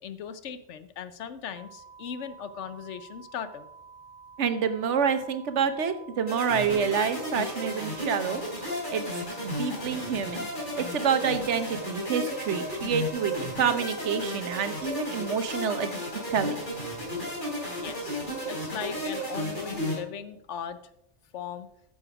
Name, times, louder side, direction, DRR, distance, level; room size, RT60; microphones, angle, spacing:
voice 1, 0.0-3.7 17.7-20.8 21.3-21.7, left 7 dB, 85° left, 12 dB, 1.1 m, -38 dB
sound 1, 1.5-19.0, right 5 dB, 40° right, 2.1 m, -50 dB
voice 2, 4.4-8.4 8.9-10.5 10.8-15.9 16.3-16.6, right 6 dB, 80° right, 11 dB, 1.2 m, -28 dB
sound 2, 6.3-20.0, equal, 45° left, 3.5 m, -33 dB
9.9 x 6.9 x 4.8 m, 0.83 s
omnidirectional pair, 1.2 m